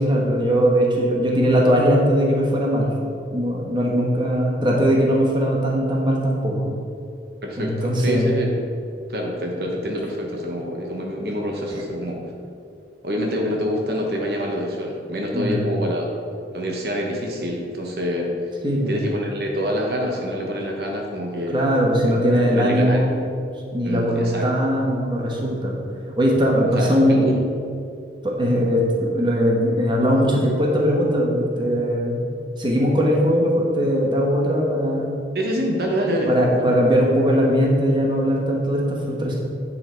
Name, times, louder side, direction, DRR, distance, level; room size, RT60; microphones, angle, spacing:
voice 1, 0.0-2.9 3.3-6.7 7.6-8.4 15.3-15.7 18.6-19.0 21.5-23.3 23.7-25.8 26.2-27.2 28.2-32.3 32.6-35.1 36.3-39.3, equal, 25° right, -2 dB, 1.2 m, -20 dB
voice 2, 7.4-8.7 9.1-12.2 13.0-16.1 16.5-18.3 18.9-21.8 22.1-22.2 22.5-23.1 23.8-24.7 26.7-27.4 35.3-36.8, equal, 60° right, 0 dB, 1.1 m, -26 dB
9.3 x 5.7 x 4.5 m, 2.4 s
head